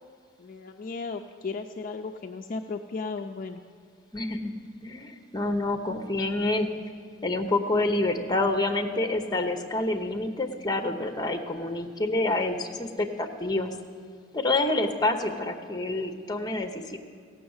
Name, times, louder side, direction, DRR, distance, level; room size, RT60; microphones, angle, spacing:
voice 1, 0.4-3.6, left 4 dB, 45° left, 5 dB, 0.4 m, -35 dB
voice 2, 4.1-4.5 4.8-6.7 7.2-13.7 14.3-17.0, left 2 dB, 20° left, 5 dB, 0.8 m, -27 dB
15.5 x 6.3 x 7.9 m, 2.2 s
head